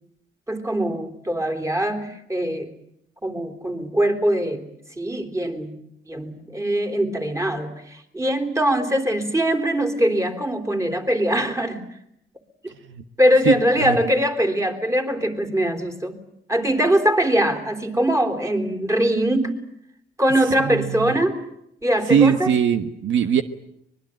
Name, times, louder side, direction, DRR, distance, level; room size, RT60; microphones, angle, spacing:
voice 1, 0.5-2.7 3.2-4.6 5.0-5.8 6.1-11.8 12.6-12.7 13.2-16.2 16.5-19.6 20.2-21.4 21.8-22.5, equal, 15° right, 7 dB, 3.6 m, -22 dB
voice 2, 13.4-14.0 20.7-21.1 22.1-23.4, right 8 dB, 70° right, 10 dB, 1.3 m, -21 dB
24.5 x 21.0 x 9.1 m, 0.76 s
cardioid pair, 90°, 20 cm